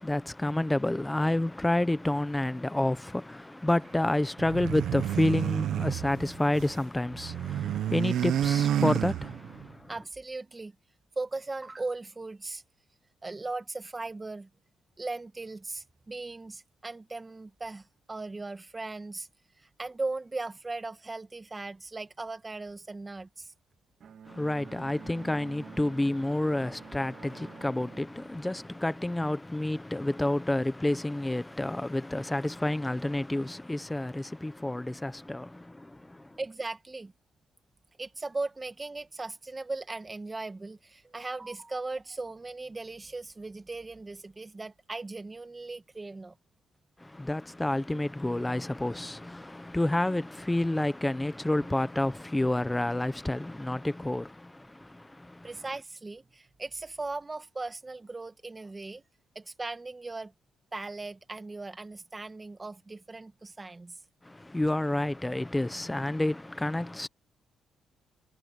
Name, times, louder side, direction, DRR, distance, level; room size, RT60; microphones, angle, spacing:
voice 1, 0.0-9.9 24.3-36.4 47.0-55.5 64.2-67.1, left 1 dB, 10° left, 1.2 m, -29 dB
sound 1, 4.4-6.8 7.1-9.7, right 10 dB, 75° right, 1.0 m, -30 dB
voice 2, 9.9-10.7 11.2-12.6 13.2-14.5 15.0-19.3 19.6-23.5 36.4-37.1 38.0-46.4 55.4-59.0 59.4-60.3 60.7-64.0, right 3 dB, 20° right, 1.9 m, -38 dB
Bowed string instrument, 24.0-29.4, right 7 dB, 55° right, 2.8 m, -50 dB
cardioid pair, 90°, 0 cm